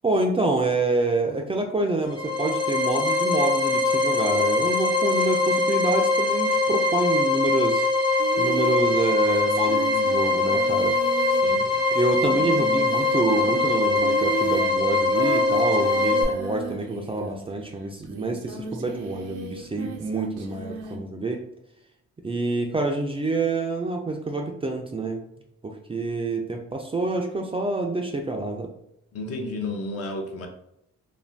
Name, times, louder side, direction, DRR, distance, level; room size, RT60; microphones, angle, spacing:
voice 1, 0.0-7.9 8.4-11.2 11.9-21.4 22.2-25.2 25.6-28.7, right 2 dB, 20° right, 2 dB, 0.4 m, -27 dB
sound 1, 2.1-16.2, left 2 dB, 15° left, 0.6 m, -22 dB
Singing, 8.2-17.6 18.0-21.0, right 6 dB, 80° right, 0.6 m, -35 dB
voice 2, 11.3-11.7 29.1-30.5, left 2 dB, 50° left, 3 dB, 0.7 m, -32 dB
2.5 x 2.2 x 3.2 m, 0.78 s
cardioid pair, 90°, 30 cm